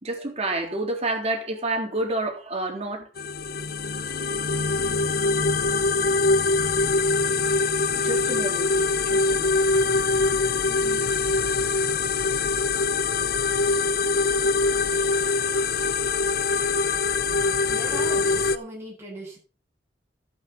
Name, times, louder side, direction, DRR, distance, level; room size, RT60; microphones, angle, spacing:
voice 1, 0.0-3.1 7.9-9.7 10.0-10.3, right 2 dB, 40° right, 3.6 m, -29 dB
sound 1, 3.2-18.6, left 4 dB, 55° left, 0.8 m, -23 dB
voice 2, 17.7-19.4, right 1 dB, 15° right, 7.5 m, -38 dB
12.0 x 8.8 x 5.6 m
head